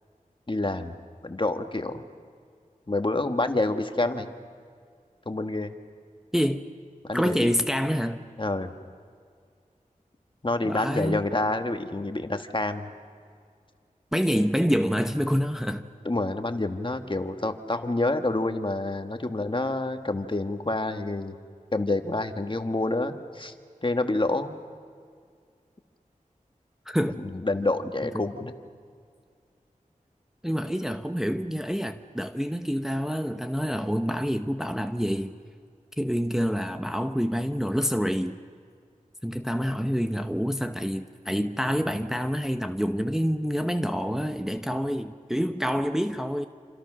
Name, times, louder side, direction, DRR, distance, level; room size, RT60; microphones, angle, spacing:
voice 1, 0.5-0.9 1.2-2.0 2.9-4.3 5.2-5.7 7.0-7.5 8.4-8.7 10.4-12.9 16.0-21.3 21.7-23.5 23.8-24.5 27.2-28.5, left 2 dB, 35° left, 7 dB, 1.6 m, -28 dB
voice 2, 6.3-6.7 7.1-8.3 10.6-11.3 14.1-15.9 26.9-27.2 28.0-28.3 30.4-35.3 36.0-38.4 39.2-46.5, equal, 5° right, 7 dB, 0.9 m, -27 dB
28.5 x 26.5 x 6.3 m, 2.2 s
wide cardioid pair, 60°, 14 cm